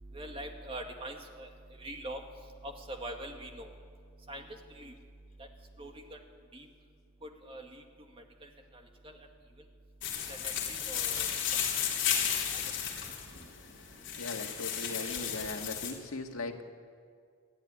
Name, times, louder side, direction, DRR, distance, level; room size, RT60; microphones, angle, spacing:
voice 1, 0.1-1.5 1.8-2.2 2.6-3.7 4.3-4.5 4.8-4.9 5.8-6.2 6.5-6.7 7.2-7.8 8.4-8.5 9.0-9.2 10.3-11.3, right 1 dB, 25° right, 3 dB, 2.1 m, -42 dB
sound 1, 10.0-15.9, left 8 dB, 60° left, 3.8 m, -33 dB
voice 2, 14.2-16.6, left 2 dB, 90° left, 4 dB, 1.9 m, -39 dB
29.0 x 11.5 x 9.9 m, 2.1 s
head